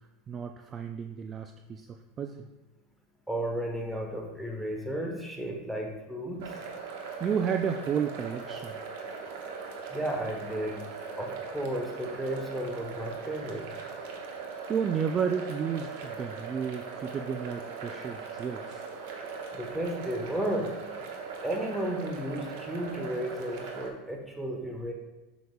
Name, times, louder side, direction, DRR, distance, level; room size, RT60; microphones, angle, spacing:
voice 1, 0.3-2.5 7.2-8.7 14.7-18.8, right 7 dB, 25° right, 6 dB, 0.3 m, -32 dB
voice 2, 3.3-6.5 9.9-10.8 11.2-13.7 19.5-20.7 21.4-24.9, right 1 dB, 5° right, 1 dB, 1.1 m, -33 dB
sound 1, 6.4-23.9, right 5 dB, 75° right, 1.2 m, -40 dB
7.7 x 7.0 x 2.3 m, 1.1 s
supercardioid pair, 145°, 0 cm